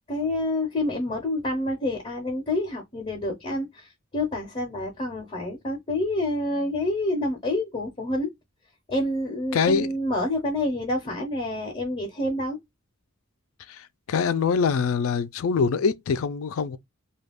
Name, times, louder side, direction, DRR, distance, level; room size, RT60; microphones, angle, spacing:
voice 1, 0.1-8.3 8.9-12.6, left 1 dB, 25° left, 0.6 m, -28 dB
voice 2, 9.5-9.9 13.7-16.8, left 5 dB, 65° left, 0.4 m, -24 dB
2.3 x 2.3 x 3.4 m
head